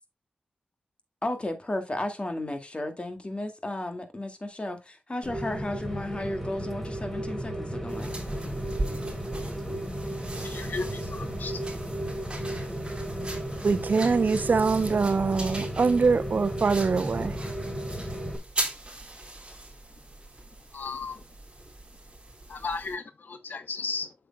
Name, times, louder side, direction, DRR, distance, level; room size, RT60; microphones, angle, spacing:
voice 1, 1.2-8.1, left 1 dB, 35° left, 2.1 m, -33 dB
Rain, 5.2-18.4, right 1 dB, 5° left, 2.3 m, -34 dB
sound 1, 7.9-23.0, right 2 dB, 30° right, 3.7 m, -39 dB
voice 2, 10.4-11.6 20.7-21.2 22.5-24.1, left 4 dB, 75° left, 1.0 m, -35 dB
voice 3, 13.6-17.4, right 4 dB, 65° right, 0.7 m, -24 dB
8.3 x 6.7 x 2.3 m
cardioid pair, 50°, 3 cm